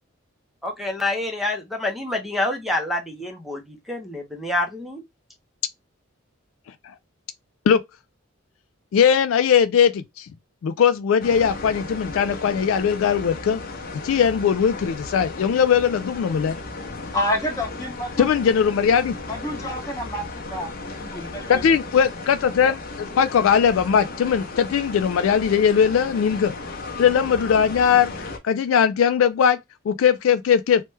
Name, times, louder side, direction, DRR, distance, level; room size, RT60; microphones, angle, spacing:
voice 1, 0.6-5.0, left 2 dB, ahead, 0.6 m, -27 dB
voice 2, 8.9-10.3 10.6-13.6 14.0-16.6 18.2-19.1 21.5-26.5 27.0-28.1 28.4-29.6 29.9-30.8, left 7 dB, 70° left, 0.3 m, -19 dB
sound 1, 11.2-28.4, left 3 dB, 45° left, 0.7 m, -35 dB
voice 3, 17.1-18.3 19.2-21.7 22.6-22.8, left 1 dB, 15° left, 0.9 m, -29 dB
3.1 x 2.2 x 3.2 m
head